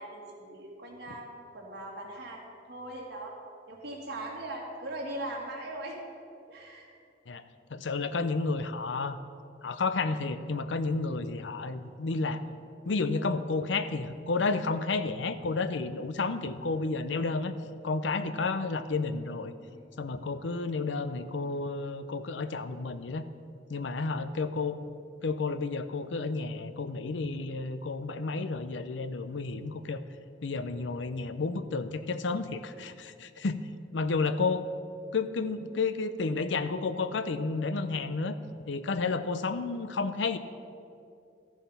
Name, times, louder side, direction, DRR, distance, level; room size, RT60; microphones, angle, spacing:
voice 1, 0.0-3.4 3.7-6.0 6.5-6.9 19.7-19.9, right 1 dB, 65° right, -3 dB, 2.2 m, -40 dB
voice 2, 7.7-9.2 9.6-12.4 12.9-17.5 17.8-19.5 20.0-23.2 23.7-24.8 25.2-30.0 30.4-33.6 33.9-34.7 35.1-38.3 38.7-40.4, left 3 dB, 85° left, 12 dB, 0.6 m, -31 dB
13.5 x 7.1 x 5.7 m, 2.5 s
head